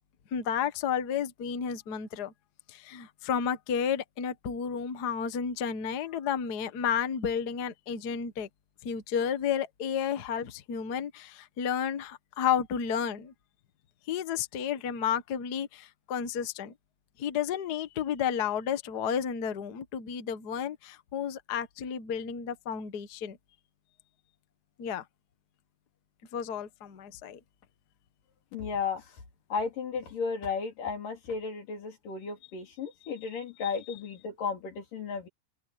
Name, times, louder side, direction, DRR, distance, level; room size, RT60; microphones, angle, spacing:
voice 1, 0.3-2.3 2.7-8.5 8.8-13.3 14.1-16.7 17.2-23.4 24.8-25.0 26.3-27.4 33.6-33.7, left 8 dB, 60° left, 1.0 m, -32 dB
voice 2, 28.5-29.2 29.5-35.3, left 5 dB, 75° left, 5.3 m, -34 dB
open air
omnidirectional pair, 3.8 m